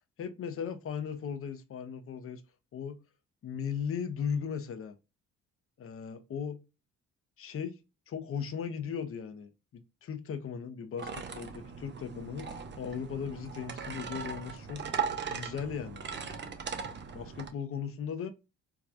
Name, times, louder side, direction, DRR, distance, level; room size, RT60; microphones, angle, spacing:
voice 1, 0.2-2.4 2.7-3.0 3.4-4.9 5.8-6.6 7.4-7.7 8.1-14.8 15.3-16.0 17.1-18.3, left 7 dB, 45° left, 0.7 m, -37 dB
sound 1, 11.0-17.5, right 6 dB, 40° right, 0.6 m, -38 dB
4.7 x 2.2 x 2.5 m
cardioid pair, 90°, 30 cm